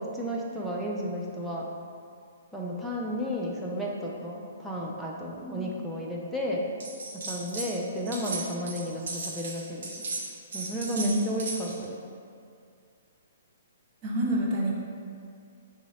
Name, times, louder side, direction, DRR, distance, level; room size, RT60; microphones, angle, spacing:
voice 1, 0.0-1.7 2.5-6.7 7.1-10.1 10.5-12.0, equal, ahead, -5 dB, 0.4 m, -33 dB
voice 2, 5.4-5.7 10.9-11.3 14.0-14.8, right 1 dB, 30° right, -4 dB, 0.8 m, -28 dB
sound 1, 6.8-7.7 8.0-11.8, right 3 dB, 55° right, 0.9 m, -36 dB
3.9 x 2.7 x 4.8 m, 2.3 s
figure-of-eight pair, 120°, 0 cm